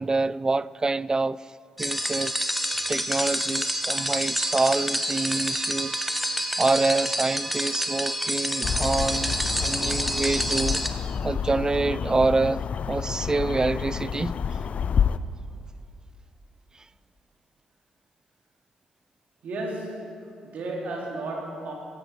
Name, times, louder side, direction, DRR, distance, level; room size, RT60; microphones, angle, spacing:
voice 1, 0.0-1.4 1.8-10.8 11.2-12.6 12.9-14.4, right 3 dB, 25° right, 0.3 m, -26 dB
sound 1, 1.8-10.9, equal, ahead, 1.2 m, -28 dB
New Jersey Backyard Sounds (airport nearby), 8.6-15.2, left 7 dB, 50° left, 0.4 m, -29 dB
voice 2, 19.4-20.1 20.4-21.7, right 2 dB, 60° right, 3.0 m, -33 dB
15.5 x 13.0 x 4.6 m
hypercardioid pair, 40°, 3 cm